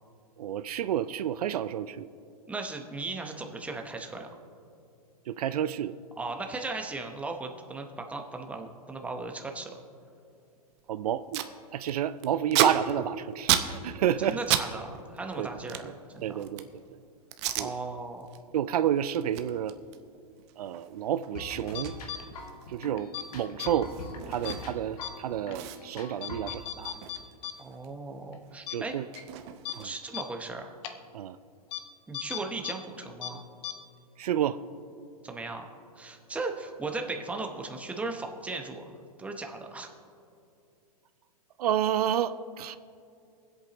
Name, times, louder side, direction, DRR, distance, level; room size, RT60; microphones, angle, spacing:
voice 1, 0.4-2.1 5.3-5.9 10.9-14.4 15.4-15.9 16.2-16.8 17.6-17.7 18.5-19.8 20.6-21.9 22.7-23.9 24.3-27.0 28.7-29.1 29.8-29.9 31.1-31.4 34.2-34.6 41.6-42.8, right 10 dB, 75° right, 14 dB, 0.4 m, -30 dB
voice 2, 2.5-4.3 6.2-9.8 14.2-16.4 17.6-18.3 27.6-28.9 29.8-30.7 32.1-33.4 35.2-35.7 36.0-38.9 39.2-39.9, right 3 dB, 5° right, 3 dB, 0.9 m, -37 dB
Packing tape duct tape, 10.8-10.9 11.1-11.5 11.8-14.7 14.9-16.8 17.3-17.7 18.1-18.4 18.7-24.9 25.2-25.3 25.5-27.9 28.2-30.2, right 11 dB, 45° right, 0.7 m, -33 dB
sound 1, 21.3-26.6, left 2 dB, 80° left, 1.8 m, -43 dB
sound 2, 21.7-22.2 23.0-23.2 23.6-23.7 24.5-24.6 25.0-25.1 25.5-25.6 26.2-27.5 27.8-27.9 28.3-28.4 28.7-28.8 29.2-29.3 29.7-29.8 30.1-30.2 30.8-30.9 31.7-31.8 32.1-32.7 33.0-33.3 33.6-33.7, left 12 dB, 45° left, 0.9 m, -36 dB
21.5 x 8.1 x 2.9 m, 2.5 s
hypercardioid pair, 130°, 20 cm